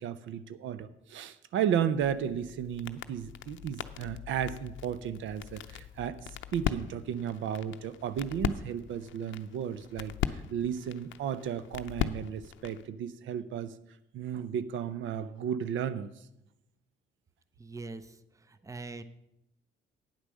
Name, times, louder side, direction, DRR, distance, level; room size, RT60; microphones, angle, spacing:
voice 1, 0.0-13.7 14.1-16.1, right 8 dB, 75° right, 15 dB, 0.6 m, -34 dB
sound 1, 2.0-12.9, left 10 dB, 70° left, 0.6 m, -39 dB
voice 2, 17.6-19.0, right 3 dB, 15° right, 12 dB, 0.6 m, -43 dB
9.0 x 8.2 x 6.2 m, 0.84 s
cardioid pair, 90°, 20 cm